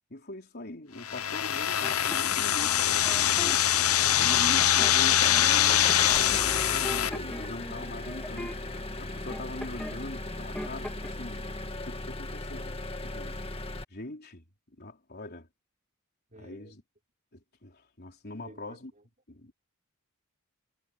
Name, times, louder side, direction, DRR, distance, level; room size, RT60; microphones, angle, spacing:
voice 1, 0.1-3.7 4.2-11.5 11.8-13.4 13.9-14.4 14.8-15.5 16.4-16.8 17.3-18.9 19.3-19.5, left 2 dB, 50° left, 4.0 m, -42 dB
sound 1, 1.0-7.1, left 11 dB, 85° left, 0.9 m, -24 dB
sound 2, 1.8-3.5 4.0-5.2 5.9-6.3 6.5-10.0 10.3-11.1, equal, 5° left, 2.3 m, -41 dB
Engine, 4.3-13.8, left 2 dB, 25° left, 1.9 m, -37 dB
voice 2, 16.3-16.8 18.4-19.0, right 1 dB, 35° right, 5.1 m, -53 dB
head